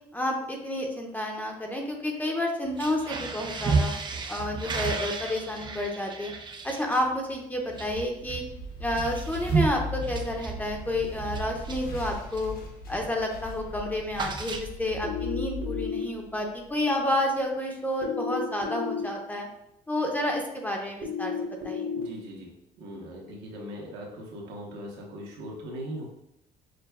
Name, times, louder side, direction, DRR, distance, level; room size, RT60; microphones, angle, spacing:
voice 1, 0.1-3.9 4.3-6.3 6.6-8.4 8.8-12.5 12.9-19.5 19.9-21.3 21.6-21.9, left 1 dB, 10° left, 1 dB, 0.7 m, -30 dB
sound 1, 2.7-12.6 13.0-13.2 13.5-15.1, right 4 dB, 25° right, 0.4 m, -33 dB
sound 2, 7.9-17.0, left 2 dB, 60° left, 0.9 m, -39 dB
sound 3, 15.0-16.0 18.0-19.0 21.0-22.0, left 6 dB, 60° right, 1.0 m, -32 dB
voice 2, 22.0-22.5 22.8-26.0, equal, 85° right, -2 dB, 1.1 m, -39 dB
6.2 x 2.2 x 2.3 m, 0.83 s
cardioid pair, 110°, 17 cm